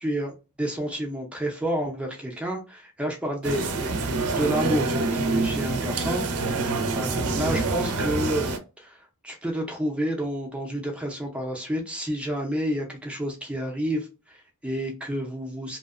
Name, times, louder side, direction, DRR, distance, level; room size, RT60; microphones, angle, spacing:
voice 1, 0.0-3.9 4.3-15.8, equal, 5° right, 0 dB, 0.5 m, -30 dB
sound 1, 3.4-8.6, right 3 dB, 85° right, 0.5 m, -26 dB
2.7 x 2.1 x 2.4 m, 0.30 s
head